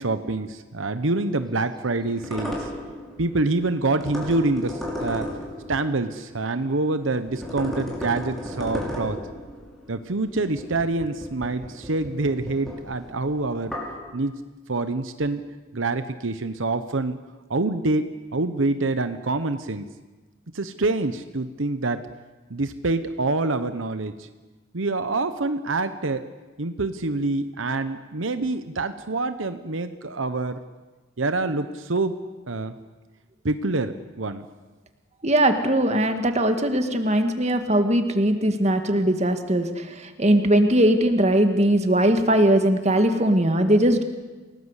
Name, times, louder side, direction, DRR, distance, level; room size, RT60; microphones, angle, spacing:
voice 1, 0.0-2.7 3.2-5.3 5.7-9.2 9.9-13.8 14.1-14.4 14.7-15.4 15.7-17.2 17.5-19.8 20.5-22.0 22.5-24.3 24.7-26.2 26.6-30.6 31.2-32.2 32.5-32.8 33.4-34.5, right 2 dB, 75° right, 10 dB, 1.0 m, -26 dB
sound 1, 1.2-6.8 7.2-14.0, equal, ahead, 5.6 m, -35 dB
voice 2, 35.2-44.0, right 1 dB, 35° right, 7 dB, 2.0 m, -20 dB
29.0 x 19.0 x 8.3 m, 1.2 s
head